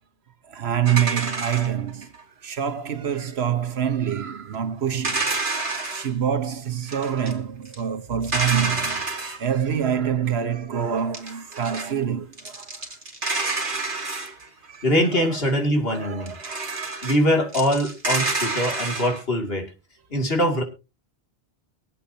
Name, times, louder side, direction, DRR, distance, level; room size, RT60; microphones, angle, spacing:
voice 1, 0.5-2.1 2.4-12.9 14.7-14.8 15.3-15.4 15.9-16.9 18.7-18.8, right 8 dB, 80° right, 1.4 m, -26 dB
sound 1, 0.8-2.2 5.0-6.1 6.9-7.3 7.6-7.8 8.2-9.4 11.0-11.9 12.3-14.8 16.3-17.2 17.5-19.2, right 3 dB, 55° right, 2.8 m, -28 dB
voice 2, 14.8-16.3 17.0-19.7 20.1-20.6, equal, 65° left, 2.8 m, -22 dB
23.5 x 8.5 x 2.8 m
omnidirectional pair, 1.1 m